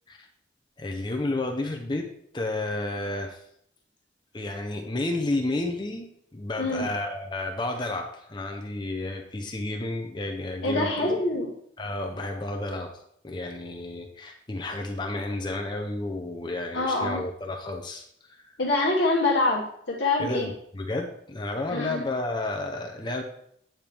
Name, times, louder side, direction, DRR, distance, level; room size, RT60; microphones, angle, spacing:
voice 1, 0.8-2.1 2.3-3.4 4.3-10.9 11.8-12.9 13.2-18.5 20.2-23.2, left 2 dB, 25° left, 3 dB, 0.6 m, -31 dB
voice 2, 10.6-11.5 16.7-17.2 18.6-20.5 21.7-22.0, left 2 dB, 70° left, -4 dB, 1.2 m, -25 dB
8.8 x 4.5 x 3.4 m, 0.70 s
head